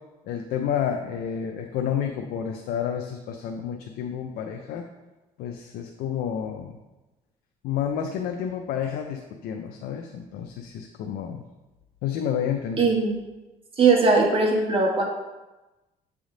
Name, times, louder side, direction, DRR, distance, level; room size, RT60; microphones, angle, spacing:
voice 1, 0.2-4.8 5.4-6.8 7.6-11.4 12.0-12.9, left 8 dB, 80° left, 4 dB, 0.5 m, -30 dB
voice 2, 12.8-13.2 13.8-15.0, right 4 dB, 35° right, 0 dB, 1.5 m, -20 dB
7.9 x 3.5 x 3.8 m, 1.1 s
cardioid pair, 95°, 16 cm